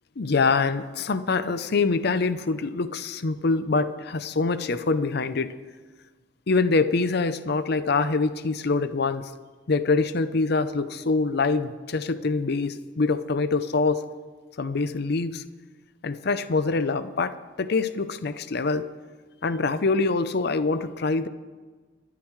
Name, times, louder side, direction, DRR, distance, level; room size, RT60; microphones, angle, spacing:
voice 1, 0.2-5.5 6.5-9.3 9.7-14.0 14.6-15.4 16.0-18.9 19.4-21.3, left 3 dB, 55° left, 12 dB, 0.6 m, -25 dB
23.5 x 12.0 x 3.2 m, 1.4 s
head